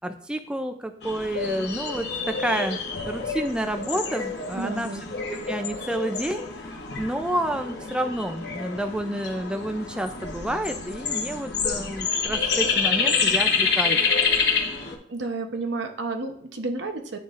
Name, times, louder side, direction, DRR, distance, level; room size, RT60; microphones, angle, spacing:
voice 1, 0.0-2.8 3.0-5.0 5.3-14.0, right 1 dB, 5° right, 6 dB, 0.3 m, -29 dB
sound 1, 1.0-15.0, left 5 dB, 65° left, 1.0 m, -27 dB
voice 2, 4.5-5.1 15.1-17.2, right 3 dB, 85° right, 5 dB, 0.8 m, -31 dB
10.0 x 3.8 x 2.5 m, 0.72 s
head